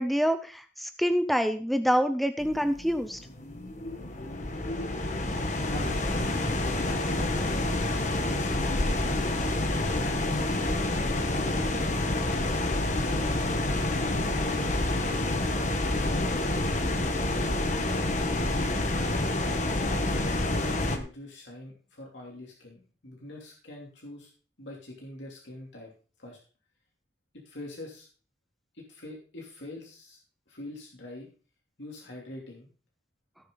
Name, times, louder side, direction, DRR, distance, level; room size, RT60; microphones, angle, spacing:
voice 1, 0.0-3.2, equal, ahead, 9 dB, 0.5 m, -26 dB
sound 1, 2.4-21.0, left 2 dB, 40° left, 1.3 m, -28 dB
voice 2, 5.6-6.4 6.8-7.7 8.1-8.8 10.3-13.3 13.8-17.5 18.4-18.8 19.8-24.3 24.6-25.9 26.2-26.4 27.4-28.1 28.7-30.2 30.5-31.3 31.8-32.7, left 1 dB, 80° left, -2 dB, 3.0 m, -44 dB
16.5 x 6.6 x 3.9 m, 0.38 s
head